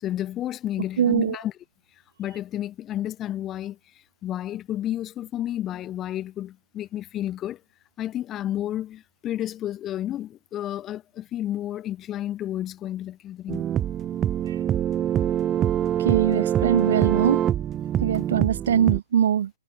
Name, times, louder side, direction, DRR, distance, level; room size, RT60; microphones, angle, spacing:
voice 1, 0.0-1.5 2.2-3.8 4.2-7.6 8.0-13.7, left 12 dB, 20° left, 4.6 m, -31 dB
voice 2, 1.0-1.4 16.0-17.4 18.0-19.5, right 9 dB, 60° right, 2.4 m, -22 dB
sound 1, 13.5-19.0, right 10 dB, 20° right, 1.8 m, -24 dB
hypercardioid pair, 130°, 0 cm